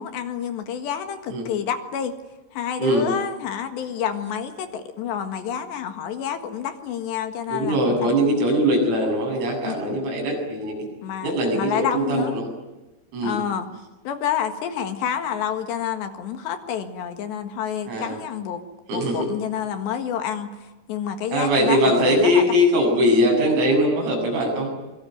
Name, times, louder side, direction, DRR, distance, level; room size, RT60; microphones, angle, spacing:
voice 1, 0.0-2.2 2.5-8.1 9.6-10.0 11.0-12.4 13.2-13.7 14.1-18.6 18.9-20.5 20.9-22.5, left 8 dB, 65° left, 8 dB, 3.5 m, -28 dB
voice 2, 2.8-3.1 7.5-10.9 11.2-12.5 13.1-13.4 17.9-18.1 18.9-19.3 21.3-24.7, equal, 85° right, 2 dB, 10.5 m, -21 dB
26.0 x 23.0 x 9.3 m, 1.1 s
omnidirectional pair, 5.9 m